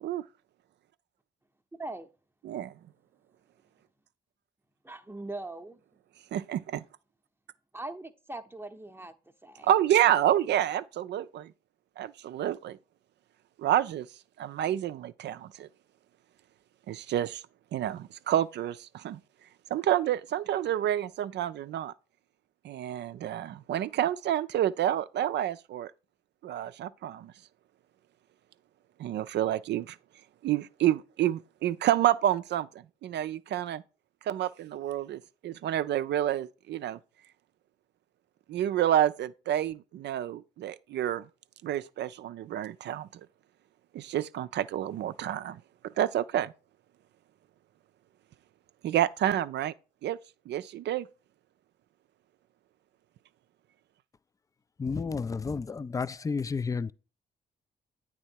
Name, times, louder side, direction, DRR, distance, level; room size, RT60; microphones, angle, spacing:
voice 1, 4.8-5.8 7.7-9.1 9.4-9.7, right 2 dB, 10° right, 0.7 m, -40 dB
voice 2, 6.3-6.8 9.6-11.5 12.0-12.8 13.6-14.1 14.4-15.7 16.9-17.4 17.7-19.2 19.7-21.9 22.6-25.9 26.4-27.3 29.0-30.0 30.4-33.8 34.3-37.0 38.5-41.3 41.6-43.2 43.9-46.5 48.8-49.7 50.0-50.2 50.5-51.1, right 11 dB, 60° right, 0.4 m, -29 dB
voice 3, 54.8-56.9, left 5 dB, 15° left, 0.3 m, -31 dB
8.7 x 3.7 x 4.5 m
hypercardioid pair, 45°, 20 cm